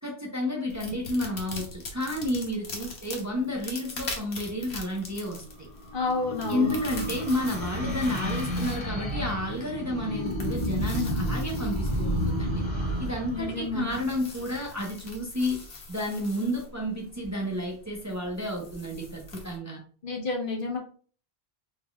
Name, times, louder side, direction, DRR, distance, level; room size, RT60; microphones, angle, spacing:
voice 1, 0.0-5.7 6.5-12.6 13.0-15.6 15.9-19.8, left 1 dB, 20° right, -1 dB, 0.7 m, -31 dB
sound 1, 0.7-19.6, left 3 dB, 85° left, 1.2 m, -43 dB
sound 2, 5.1-14.7, equal, 35° left, 2.0 m, -31 dB
voice 2, 5.9-6.7 13.3-14.0 20.0-20.8, left 3 dB, 55° left, 0 dB, 1.0 m, -30 dB
3.8 x 3.7 x 2.3 m, 0.43 s
omnidirectional pair, 1.1 m